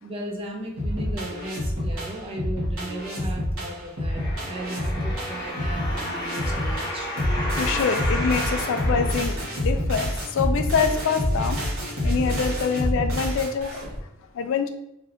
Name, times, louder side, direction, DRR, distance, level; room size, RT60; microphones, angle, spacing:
voice 1, 0.0-7.1, right 1 dB, 25° right, 0 dB, 0.6 m, -36 dB
sound 1, 0.8-14.0, equal, 65° right, 1.2 m, -27 dB
sound 2, 4.1-10.0 10.6-10.7, left 1 dB, 20° left, 1.0 m, -32 dB
voice 2, 7.6-11.6 12.0-13.7 14.4-14.7, left 6 dB, 65° left, 9 dB, 0.3 m, -25 dB
3.3 x 2.7 x 2.6 m, 0.82 s
head